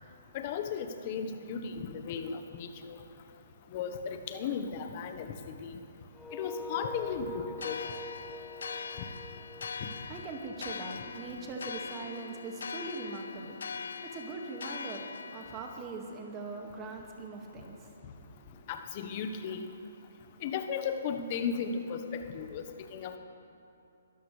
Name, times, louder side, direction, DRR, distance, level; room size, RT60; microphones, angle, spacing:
voice 1, 0.3-3.0 3.7-5.7 6.3-7.9 18.7-19.7 20.4-22.6 22.9-23.2, left 6 dB, 40° left, 6 dB, 1.2 m, -35 dB
sound 1, 6.1-11.0, left 2 dB, 5° left, 0.4 m, -45 dB
sound 2, 7.6-15.8, left 5 dB, 70° left, 0.6 m, -42 dB
voice 2, 10.1-13.6 14.0-18.1 18.4-18.6, right 3 dB, 25° right, 1 dB, 2.0 m, -41 dB
22.0 x 13.0 x 3.4 m, 2.7 s
hypercardioid pair, 140°, 0 cm